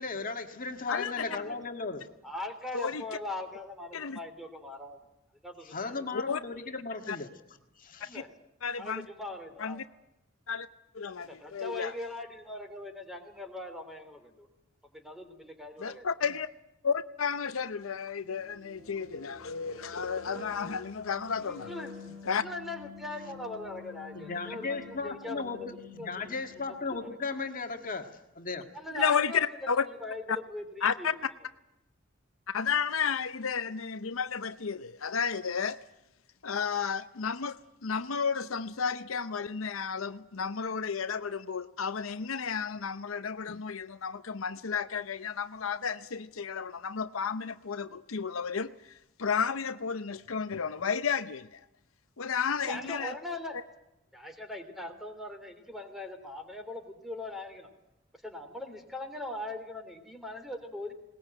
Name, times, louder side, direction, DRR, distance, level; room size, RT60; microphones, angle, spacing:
voice 1, 0.0-2.1 5.6-7.3 7.8-8.2 24.1-28.7, left 4 dB, 40° left, 5 dB, 1.9 m, -36 dB
voice 2, 1.2-1.6 2.2-5.0 5.4-6.1 8.0-8.3 8.8-9.8 11.2-14.5 14.9-16.0 21.4-21.9 22.3-25.5 26.0-26.3 28.7-29.5 29.9-31.1 52.6-53.5 54.1-57.7 58.2-60.9, left 2 dB, ahead, 6 dB, 3.1 m, -40 dB
voice 3, 2.7-3.0 3.9-4.2 6.1-6.4 7.1-7.2 8.6-9.0 9.6-9.8 10.5-10.7 10.9-11.9 15.8-16.5 16.8-21.7 22.2-22.4 28.9-29.8 30.3-30.4 30.8-31.1 32.5-35.8 36.4-37.6 37.8-51.6 52.2-53.1, left 6 dB, 75° left, 11 dB, 0.7 m, -32 dB
sound 1, 18.2-27.0, left 4 dB, 65° right, 7.3 m, -48 dB
20.5 x 19.5 x 8.9 m, 0.90 s
head